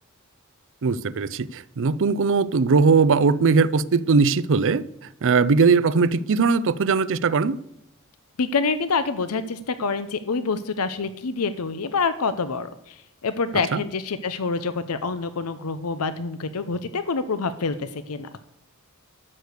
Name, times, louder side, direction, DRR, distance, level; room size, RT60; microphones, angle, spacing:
voice 1, 0.8-4.8 5.2-7.6 13.7-13.8, right 4 dB, 60° right, 0.5 m, -20 dB
voice 2, 8.4-18.3, left 4 dB, 90° left, 0.7 m, -27 dB
12.5 x 6.6 x 8.2 m
head